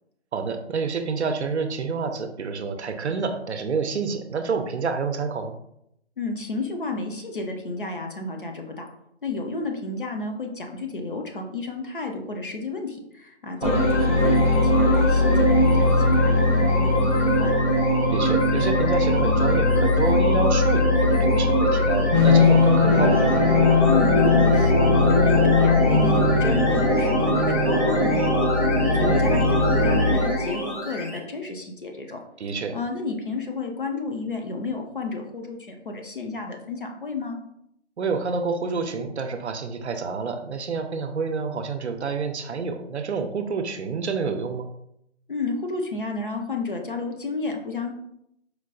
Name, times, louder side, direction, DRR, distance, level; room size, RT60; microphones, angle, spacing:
voice 1, 0.3-5.5 13.6-13.9 18.1-23.3 28.9-29.3 32.4-32.8 38.0-44.7, right 5 dB, 70° right, 7 dB, 0.5 m, -28 dB
voice 2, 6.2-8.9 9.2-17.5 23.9-28.5 28.8-32.2 32.7-37.4 45.3-47.9, left 3 dB, 50° left, 3 dB, 0.5 m, -31 dB
sound 1, 13.6-31.2, left 2 dB, 85° left, 1.5 m, -19 dB
4.4 x 2.2 x 2.4 m, 0.77 s
figure-of-eight pair, 170°, 35 cm